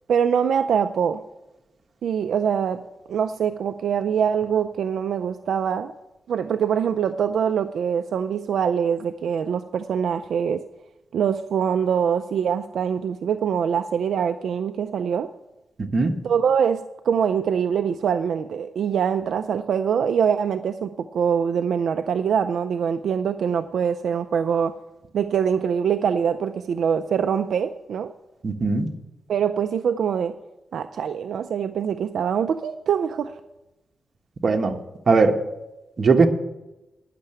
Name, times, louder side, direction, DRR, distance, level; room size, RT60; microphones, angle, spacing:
voice 1, 0.1-1.2 2.0-2.8 3.1-5.9 6.3-10.6 11.1-15.3 16.2-24.7 25.1-28.1 29.3-30.3 30.7-33.3, right 7 dB, 80° right, 9 dB, 0.4 m, -23 dB
voice 2, 28.4-28.9 34.4-34.8 35.1-35.4 36.0-36.3, right 4 dB, 50° right, 4 dB, 1.3 m, -19 dB
10.5 x 6.6 x 8.8 m, 0.97 s
cardioid pair, 95°, 0 cm